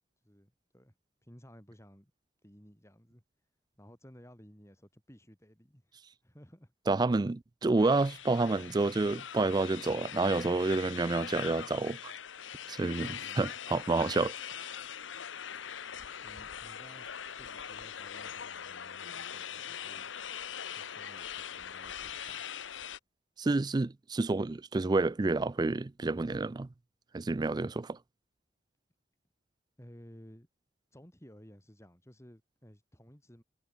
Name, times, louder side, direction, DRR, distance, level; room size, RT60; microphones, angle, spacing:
voice 1, 0.2-0.9 1.2-2.1 2.4-3.2 3.8-6.7 13.2-13.6 16.2-17.1 17.4-20.1 20.8-22.5 29.8-30.5 30.9-33.4, equal, 15° left, 6.1 m, -56 dB
voice 2, 6.9-12.1 12.7-14.3 23.4-26.7 27.1-28.0, right 3 dB, 20° right, 0.4 m, -29 dB
sound 1, 7.8-23.0, left 8 dB, 80° left, 1.0 m, -42 dB
head